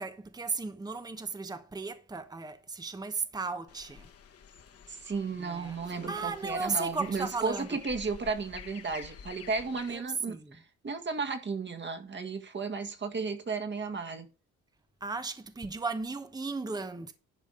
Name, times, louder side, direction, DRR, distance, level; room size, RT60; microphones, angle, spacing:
voice 1, 0.0-4.1 5.4-7.7 9.9-10.6 15.0-17.1, right 4 dB, 15° right, 1.0 m, -36 dB
sound 1, 3.7-10.0, left 7 dB, 50° left, 1.4 m, -50 dB
voice 2, 4.9-14.3, right 4 dB, 35° right, 1.8 m, -34 dB
11.0 x 5.1 x 5.0 m
cardioid pair, 90°, 30 cm